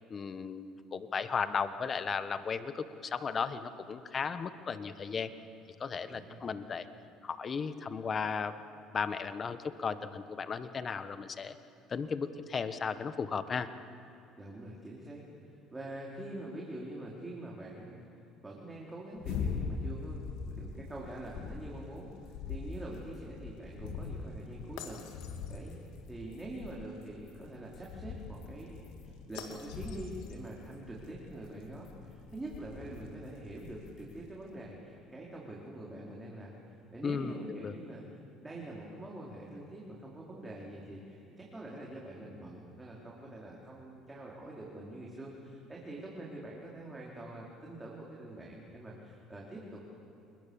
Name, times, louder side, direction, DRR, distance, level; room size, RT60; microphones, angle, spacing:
voice 1, 0.1-5.3 5.8-6.9 7.2-8.5 8.9-11.5 11.9-13.7 37.0-37.7, left 5 dB, 35° left, 11 dB, 1.4 m, -35 dB
voice 2, 14.4-18.0 18.4-20.2 20.5-25.0 25.5-25.8 26.1-49.9, right 1 dB, 15° right, -4 dB, 4.6 m, -45 dB
sound 1, 19.2-34.3, left 5 dB, 75° left, 2.5 m, -42 dB
28.0 x 21.5 x 7.3 m, 2.7 s
supercardioid pair, 85°, 0 cm